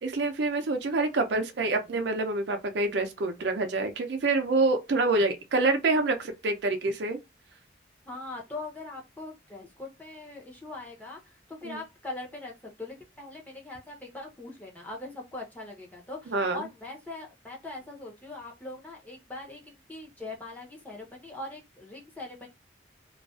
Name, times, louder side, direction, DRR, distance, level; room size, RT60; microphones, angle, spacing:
voice 1, 0.0-7.2 11.6-11.8 16.3-16.7, right 3 dB, 65° right, 0.5 m, -27 dB
voice 2, 8.1-22.5, left 2 dB, 10° left, 0.6 m, -41 dB
2.4 x 2.2 x 2.3 m
head